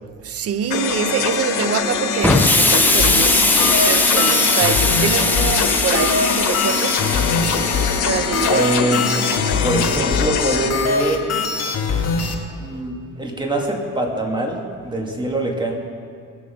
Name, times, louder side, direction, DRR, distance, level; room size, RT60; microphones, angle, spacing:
voice 1, 0.2-3.4 3.8-7.5 8.0-8.7 11.9-12.4, right 8 dB, 55° right, 0.6 m, -25 dB
sound 1, 0.7-10.7, left 6 dB, 80° left, 1.5 m, -23 dB
Explosion, 2.2-8.0, left 2 dB, 5° left, 1.0 m, -19 dB
sound 2, 3.0-12.3, left 4 dB, 60° left, 1.7 m, -23 dB
voice 2, 8.4-9.1 9.6-11.2 12.6-15.8, right 2 dB, 15° right, 2.2 m, -23 dB
20.5 x 7.0 x 5.5 m
cardioid pair, 90°, 30 cm